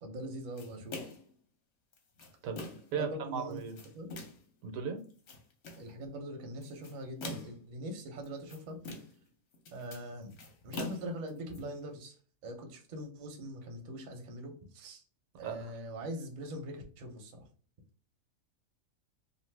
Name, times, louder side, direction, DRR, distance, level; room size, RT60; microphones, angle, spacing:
voice 1, 0.0-1.0 2.9-3.6 3.9-4.1 5.8-8.8 9.7-10.3 10.6-12.2 12.4-15.0 15.4-17.5, right 1 dB, 50° right, 3 dB, 0.6 m, -42 dB
sound 1, 0.6-1.3 1.9-3.0 3.5-4.5 5.0-5.9 6.6-7.7 8.2-9.3 9.5-11.6, left 2 dB, 55° left, 0.9 m, -44 dB
voice 2, 2.4-3.8 4.6-5.0 15.4-15.8, right 6 dB, 75° right, 6 dB, 1.0 m, -37 dB
2.6 x 2.5 x 3.2 m, 0.43 s
omnidirectional pair, 1.4 m